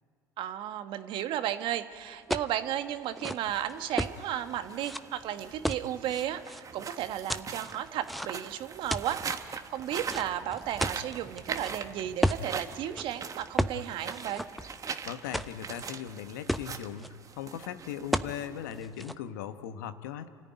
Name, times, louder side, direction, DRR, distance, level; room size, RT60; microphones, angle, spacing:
voice 1, 0.4-14.4, right 11 dB, 60° right, 9 dB, 1.4 m, -34 dB
sound 1, 2.3-2.5 3.0-4.2 4.8-5.0 5.6-6.6 7.3-8.5 8.9-9.3 10.1-11.7 12.2-12.5 12.9-13.1 13.6-13.8 14.1-14.9 15.3-15.9 16.2-16.3 16.5-17.1 18.1-18.4 18.7-19.2, equal, ahead, 0.9 m, -32 dB
sound 2, 3.3-19.0, right 6 dB, 35° right, 1.4 m, -42 dB
voice 2, 15.1-20.3, left 9 dB, 75° left, 10 dB, 1.1 m, -39 dB
29.5 x 14.0 x 9.8 m, 2.3 s
hypercardioid pair, 65°, 10 cm